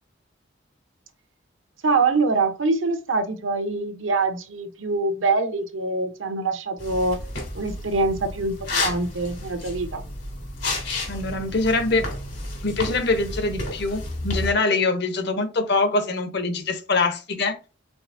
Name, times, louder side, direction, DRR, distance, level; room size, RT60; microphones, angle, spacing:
voice 1, 1.8-7.2 7.5-10.0, right 3 dB, 80° right, 8 dB, 0.8 m, -24 dB
sound 1, 6.8-14.5, left 2 dB, 80° left, 2.6 m, -31 dB
voice 2, 11.1-12.0 12.6-17.5, left 3 dB, 60° left, 9 dB, 0.8 m, -24 dB
4.7 x 4.1 x 2.6 m, 0.33 s
head